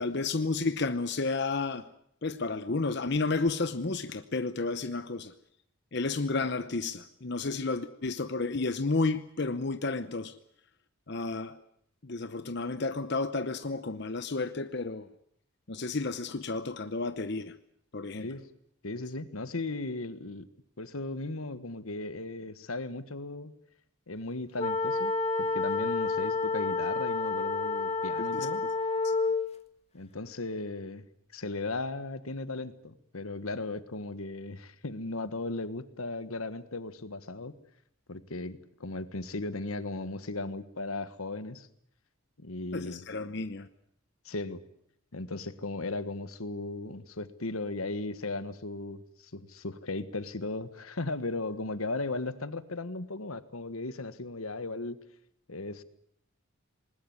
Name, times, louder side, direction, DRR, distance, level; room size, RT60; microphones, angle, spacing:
voice 1, 0.0-1.9 2.2-5.3 5.9-10.3 11.1-11.6 12.0-15.1 15.7-17.5 17.9-18.3 28.3-28.7 29.0-29.1 42.7-43.7, left 3 dB, 55° left, 0.8 m, -31 dB
voice 2, 18.8-20.5 20.8-23.5 24.1-25.1 25.4-28.6 29.9-31.0 31.3-37.5 38.1-41.7 42.4-43.0 44.2-44.6 45.1-55.0 55.5-55.8, left 2 dB, 85° left, 1.5 m, -36 dB
sound 1, 24.6-29.5, left 3 dB, 30° left, 1.6 m, -29 dB
20.5 x 19.5 x 9.6 m
head